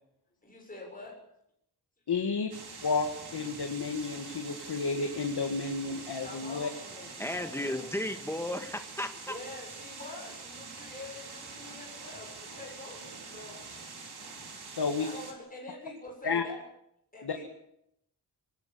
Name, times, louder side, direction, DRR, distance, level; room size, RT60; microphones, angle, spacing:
voice 1, 0.4-1.2 6.2-7.9 9.1-13.6 15.0-16.6 17.1-17.5, left 2 dB, 20° left, -1 dB, 7.0 m, -46 dB
voice 2, 2.1-2.5 2.8-6.7 14.8-15.1 16.2-16.4 17.2-17.4, left 4 dB, 75° left, 4 dB, 2.0 m, -31 dB
sound 1, 2.5-15.3, right 4 dB, 75° right, 5.0 m, -45 dB
voice 3, 7.2-9.3, left 1 dB, 5° left, 6 dB, 1.8 m, -34 dB
26.0 x 18.5 x 7.1 m, 0.78 s
wide cardioid pair, 170°, 39 cm